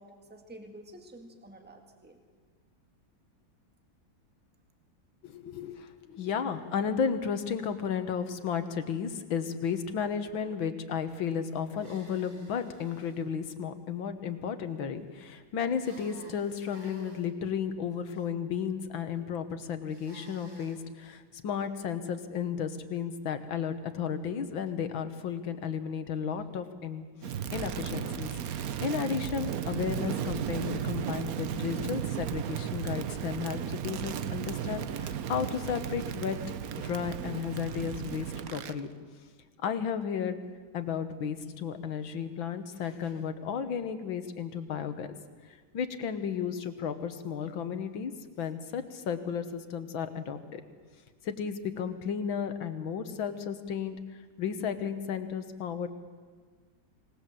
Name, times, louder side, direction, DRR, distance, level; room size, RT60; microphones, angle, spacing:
voice 1, 0.0-2.2, right 1 dB, 5° right, 4 dB, 1.8 m, -50 dB
voice 2, 5.2-27.1 27.5-36.4 36.8-38.9 39.6-40.4 40.7-45.1 45.7-48.1 48.4-50.6 51.2-54.0 54.4-55.9, left 7 dB, 80° left, 9 dB, 2.1 m, -33 dB
sound 1, 11.7-13.2 15.8-17.3 19.9-20.8, right 2 dB, 25° right, 2.5 m, -52 dB
Crackle, 27.2-38.8, right 9 dB, 60° right, 1.1 m, -35 dB
25.5 x 18.5 x 7.7 m, 1.5 s
omnidirectional pair, 2.1 m